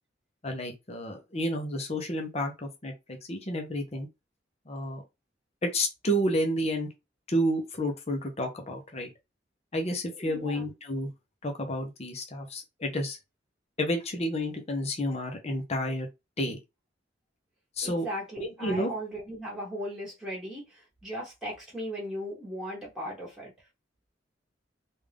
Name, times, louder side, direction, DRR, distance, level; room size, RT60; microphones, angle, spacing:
voice 1, 0.4-4.1 4.7-5.0 5.6-6.9 7.3-9.1 9.7-11.1 11.4-13.2 13.8-16.1 16.4-16.6 17.8-18.1 18.4-18.9, equal, 35° left, 0.8 m, -30 dB
voice 2, 10.2-10.6 17.8-23.5, equal, 5° right, 1.3 m, -37 dB
3.6 x 2.6 x 3.4 m
head